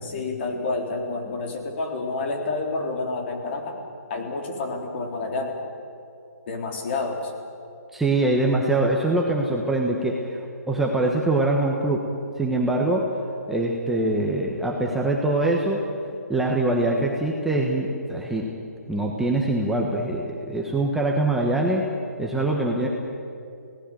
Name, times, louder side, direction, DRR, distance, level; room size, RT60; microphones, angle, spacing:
voice 1, 0.0-3.8 4.1-5.6 6.5-7.3, left 3 dB, 40° left, 2 dB, 4.1 m, -29 dB
voice 2, 7.9-10.4 10.7-12.1 12.4-13.1 13.5-15.8 16.3-18.5 18.9-21.9 22.2-22.9, right 2 dB, 5° right, -2 dB, 1.4 m, -23 dB
27.5 x 18.0 x 7.7 m, 2.6 s
hypercardioid pair, 155°, 9 cm